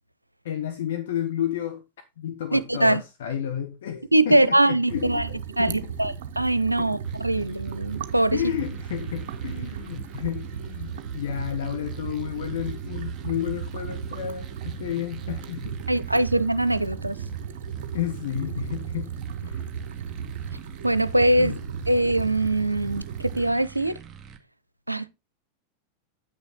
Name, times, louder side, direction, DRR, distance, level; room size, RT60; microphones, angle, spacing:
voice 1, 0.4-1.8 2.2-6.0 6.8-6.9 8.3-15.8 17.9-19.1 19.4-19.6 21.4-21.6, left 10 dB, 60° left, 1.2 m, -31 dB
voice 2, 2.5-3.0 4.1-5.3 5.6-8.4 15.9-17.2 20.8-21.5 21.9-24.0 24.9-25.1, right 1 dB, 85° right, 0.6 m, -22 dB
sound 1, 4.9-23.5, right 7 dB, 55° right, 0.9 m, -35 dB
sound 2, 7.0-24.4, right 5 dB, 25° right, 1.9 m, -47 dB
9.1 x 6.3 x 4.1 m
figure-of-eight pair, 90°, 0 cm